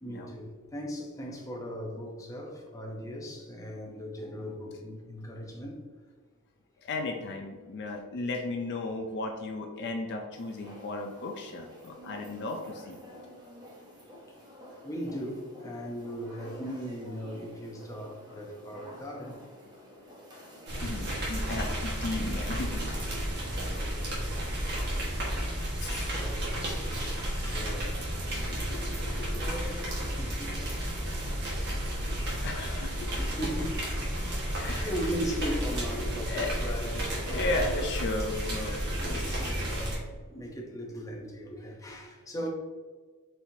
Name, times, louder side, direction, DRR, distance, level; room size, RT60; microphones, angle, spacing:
voice 1, 0.0-5.8 7.7-7.8 14.3-14.4 14.8-19.4 23.7-24.4 25.9-29.0 29.4-30.8 33.2-34.4 34.8-37.7 38.8-42.5, equal, 15° left, 0 dB, 0.7 m, -38 dB
voice 2, 6.8-13.0 20.8-22.9 25.8-26.1 28.8-29.5 32.4-33.1 34.6-34.9 36.3-36.8 37.2-39.5, left 2 dB, 50° left, 2 dB, 0.4 m, -35 dB
sound 1, 10.3-20.8, equal, 20° right, 0.8 m, -50 dB
sound 2, 20.7-40.0, equal, 50° right, 1.3 m, -32 dB
4.4 x 4.1 x 2.7 m, 1.5 s
head